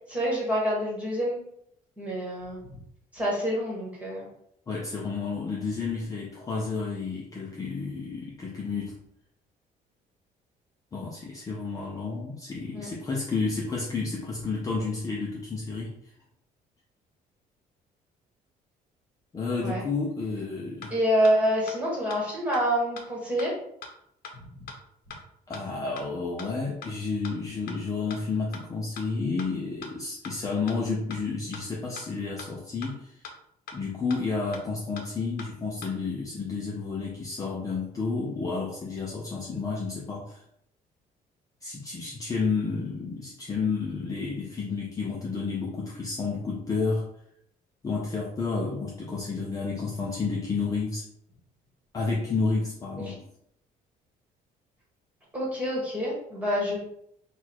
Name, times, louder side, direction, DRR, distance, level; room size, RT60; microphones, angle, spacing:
voice 1, 0.1-1.4 2.0-2.8 3.1-4.3 12.7-12.9 19.6-19.8 20.9-23.5 53.1-53.2 55.3-56.8, equal, 10° right, -5 dB, 1.5 m, -27 dB
voice 2, 4.7-8.9 10.9-15.9 19.3-21.0 25.5-33.2 33.7-40.4 41.6-47.1 47.8-51.1 51.9-53.2, left 4 dB, 20° left, -3 dB, 0.6 m, -31 dB
sound 1, 20.8-20.9 21.2-21.3 21.7-21.8 22.1-22.2 22.5-22.6 23.0-23.1 23.4-23.5 23.8-23.9 24.2-24.3 24.7-24.8 25.1-25.2 25.5-25.6 26.0-26.1 26.4-26.5 26.8-26.9 27.2-27.3 27.7-27.8 28.1-28.2 28.5-28.6 29.0-29.1 29.4-29.5 29.8-29.9 30.2-30.3 30.7-30.8 31.1-31.2 31.5-31.6 32.0-32.1 32.4-32.5 32.8-32.9 33.2-33.3 33.7-33.8 34.1-34.2 34.5-34.6 35.0-35.1 35.4-35.5 35.8-35.9, left 4 dB, 70° left, 0.8 m, -40 dB
4.1 x 2.4 x 4.2 m, 0.72 s
cardioid pair, 155°, 16 cm